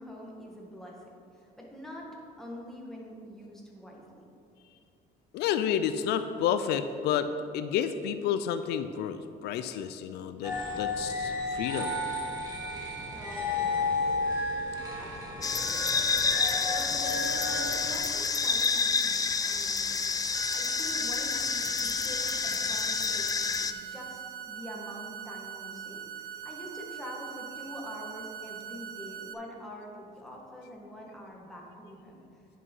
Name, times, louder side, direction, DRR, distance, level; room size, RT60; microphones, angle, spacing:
voice 1, 0.0-2.1 2.4-4.2 13.1-14.2 15.0-15.8 16.7-19.9 20.5-32.2, equal, ahead, -3 dB, 1.9 m, -45 dB
voice 2, 5.3-7.3 7.5-11.9, left 9 dB, 80° left, 10 dB, 0.4 m, -30 dB
sound 1, 10.4-18.0, left 2 dB, 20° right, 2.4 m, -32 dB
sound 2, 15.4-23.7, left 5 dB, 20° left, 0.4 m, -29 dB
sound 3, 20.3-29.3, right 8 dB, 60° right, 0.7 m, -42 dB
9.5 x 5.6 x 5.6 m, 2.6 s
cardioid pair, 110°, 17 cm